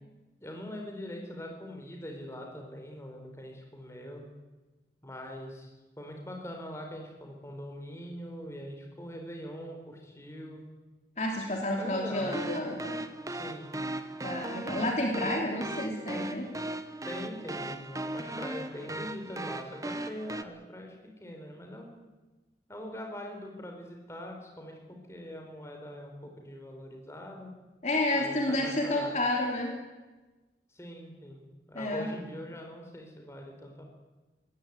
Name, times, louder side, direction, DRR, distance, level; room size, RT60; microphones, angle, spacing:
voice 1, 0.4-4.2 5.0-10.6 11.8-12.3 13.3-13.8 15.2-15.3 17.0-20.9 21.2-22.0 22.7-24.8 25.1-27.5 28.1-29.1 30.7-33.9, equal, 15° left, 2 dB, 4.5 m, -42 dB
voice 2, 11.2-13.0 14.2-16.5 27.8-29.7 31.7-32.1, left 1 dB, 40° left, 1 dB, 3.3 m, -30 dB
sound 1, 12.2-20.4, right 1 dB, 20° right, 1.1 m, -37 dB
21.5 x 17.0 x 9.7 m, 1.1 s
head